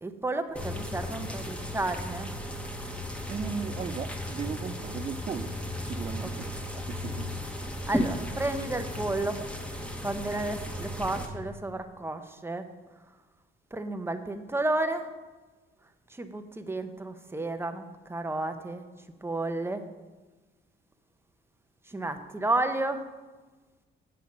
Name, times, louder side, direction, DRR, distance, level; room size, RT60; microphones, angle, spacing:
voice 1, 0.0-2.3 6.2-6.5 7.1-7.2 7.9-9.4 10.0-12.6 13.7-15.1 16.1-18.8 19.2-19.8 21.9-23.0, right 2 dB, 10° right, 7 dB, 0.8 m, -32 dB
sound 1, 0.5-11.3, left 1 dB, 5° left, 1.2 m, -35 dB
voice 2, 3.3-6.5 6.7-7.4, right 6 dB, 30° right, 10 dB, 0.3 m, -37 dB
8.4 x 6.7 x 5.3 m, 1.3 s
cardioid pair, 90°, 20 cm